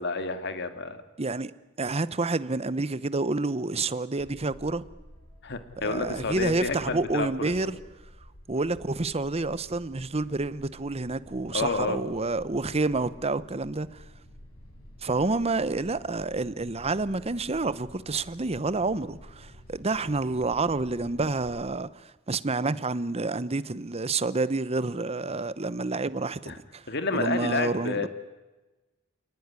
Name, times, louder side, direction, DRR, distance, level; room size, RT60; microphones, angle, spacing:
voice 1, 0.0-1.0 5.4-7.5 11.5-12.0 26.5-26.6 26.9-28.1, left 3 dB, 55° left, 2.2 m, -30 dB
voice 2, 1.2-1.5 1.8-4.8 5.8-7.7 8.5-14.0 15.0-26.8 27.1-28.1, right 3 dB, 30° right, 0.9 m, -29 dB
sound 1, 4.2-21.7, equal, 85° left, 5.9 m, -50 dB
28.5 x 19.0 x 9.7 m
head